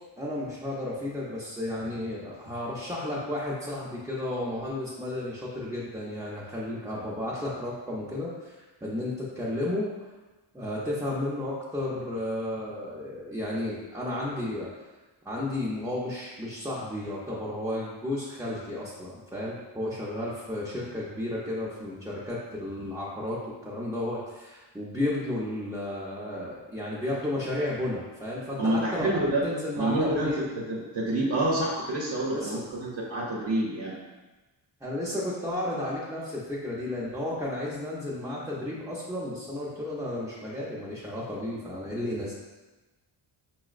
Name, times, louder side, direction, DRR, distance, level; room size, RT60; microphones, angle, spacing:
voice 1, 0.2-8.6 8.8-9.9 10.5-14.7 15.2-30.4 32.3-32.6 34.8-42.3, left 1 dB, 5° right, -8 dB, 0.5 m, -33 dB
voice 2, 28.6-29.4 29.8-34.0, right 1 dB, 55° right, -4 dB, 0.7 m, -28 dB
5.3 x 2.0 x 2.4 m, 1.2 s
cardioid pair, 105°, 49 cm